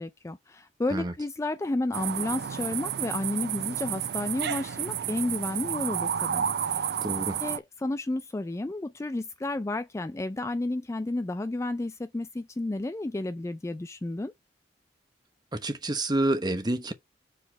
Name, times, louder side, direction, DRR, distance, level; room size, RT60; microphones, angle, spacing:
voice 1, 0.0-7.0 7.4-14.3, left 2 dB, 15° left, 0.3 m, -32 dB
sound 1, 1.9-7.6, right 9 dB, 60° right, 0.4 m, -31 dB
voice 2, 7.0-7.4 15.5-16.9, right 1 dB, 25° right, 1.0 m, -28 dB
4.9 x 4.0 x 5.7 m
head